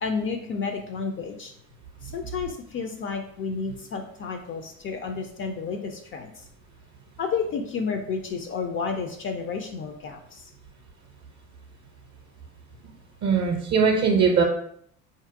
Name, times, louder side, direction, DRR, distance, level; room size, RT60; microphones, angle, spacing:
voice 1, 0.0-1.5 2.0-6.4 7.2-10.4, left 5 dB, 30° left, 5 dB, 0.4 m, -31 dB
voice 2, 13.2-14.4, right 5 dB, 40° right, 1 dB, 0.7 m, -20 dB
3.6 x 2.6 x 2.6 m, 0.65 s
figure-of-eight pair, 60°, 42 cm